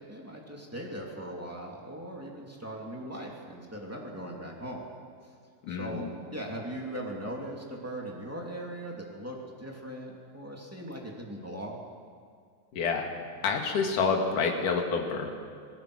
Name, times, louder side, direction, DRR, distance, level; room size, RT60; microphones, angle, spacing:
voice 1, 0.1-4.9 5.2-5.3 5.7-11.8, right 1 dB, 5° right, -2 dB, 1.1 m, -39 dB
voice 2, 5.6-6.1 12.7-13.1 13.4-15.3, left 5 dB, 50° left, 2 dB, 3.0 m, -28 dB
25.5 x 19.0 x 6.4 m, 2.2 s
omnidirectional pair, 5.5 m